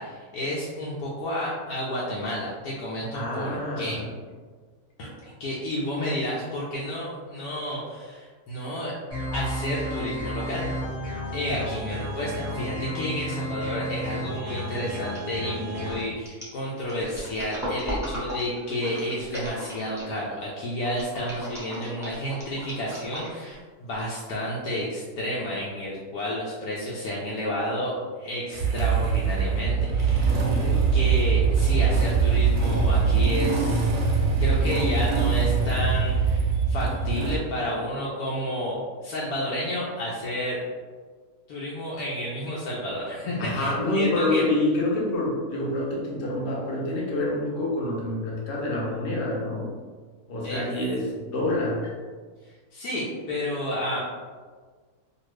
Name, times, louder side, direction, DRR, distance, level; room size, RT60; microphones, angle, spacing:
voice 1, 0.0-4.0 5.0-8.9 9.3-10.7 11.3-30.5 30.9-34.1 34.4-40.6 41.5-44.4 50.4-50.7 52.7-54.1, equal, 85° left, -6 dB, 1.1 m, -31 dB
voice 2, 3.1-4.1 30.2-30.9 43.4-49.7 50.3-51.9, left 1 dB, 50° left, -4 dB, 0.8 m, -27 dB
sound 1, 9.1-15.9, equal, 15° left, 1.4 m, -32 dB
sound 2, 13.9-14.2 14.5-20.3 20.9-23.5 24.0-24.1, equal, 5° right, 0.5 m, -36 dB
Motorcycle / Engine starting, 28.5-37.4, right 5 dB, 65° right, 0.8 m, -22 dB
2.7 x 2.5 x 3.0 m, 1.5 s
omnidirectional pair, 1.6 m